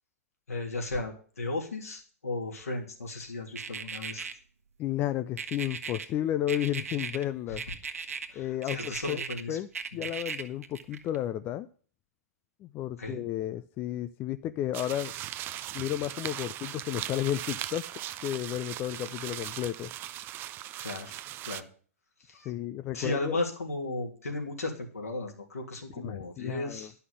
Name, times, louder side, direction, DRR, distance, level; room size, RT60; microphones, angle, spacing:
voice 1, 0.5-4.3 7.5-7.6 8.3-9.6 10.0-10.1 13.0-13.2 20.8-21.1 21.4-21.6 22.2-22.5 22.9-26.9, left 2 dB, 75° left, 1 dB, 2.8 m, -35 dB
sound 1, 3.6-4.3 5.4-6.1 6.5-7.2 7.6-8.3 8.6-9.4 9.7-11.2, right 6 dB, 70° right, 1.2 m, -36 dB
voice 2, 4.8-7.6 8.3-11.7 12.6-15.1 15.7-17.9 18.2-19.9 22.5-23.4 26.0-26.9, left 12 dB, 25° left, 12 dB, 0.4 m, -32 dB
sound 2, 14.7-21.6, right 13 dB, 25° right, 0.5 m, -39 dB
11.0 x 5.7 x 8.1 m, 0.44 s
figure-of-eight pair, 110°, 8 cm